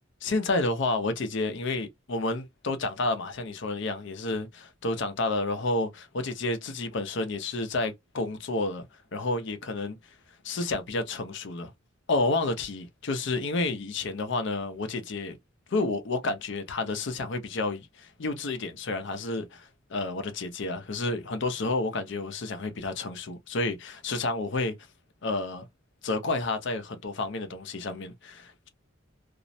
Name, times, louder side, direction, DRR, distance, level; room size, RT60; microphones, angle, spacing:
voice 1, 0.2-8.8 9.1-10.0 10.4-11.7 12.1-15.4 15.7-24.8 25.2-25.7 26.0-28.7, left 2 dB, 60° left, 0.6 m, -30 dB
2.4 x 2.0 x 2.6 m
head